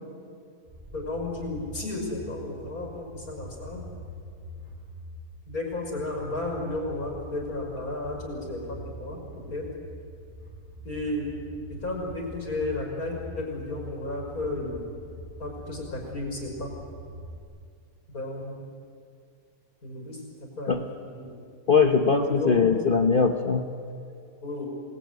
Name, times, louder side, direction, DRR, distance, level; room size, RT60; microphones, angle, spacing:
sound 1, 0.7-17.4, equal, 30° right, 5.2 m, -44 dB
voice 1, 0.9-3.8 5.5-9.2 9.5-9.7 10.8-11.3 11.7-14.8 15.4-16.7 18.1-18.6 19.8-20.8 21.1-21.3 22.0-22.8 24.4-24.7, left 2 dB, 65° left, 0 dB, 6.1 m, -33 dB
voice 2, 21.7-23.6, left 5 dB, 40° left, 6 dB, 1.1 m, -21 dB
27.5 x 20.0 x 9.5 m, 2.3 s
omnidirectional pair, 1.6 m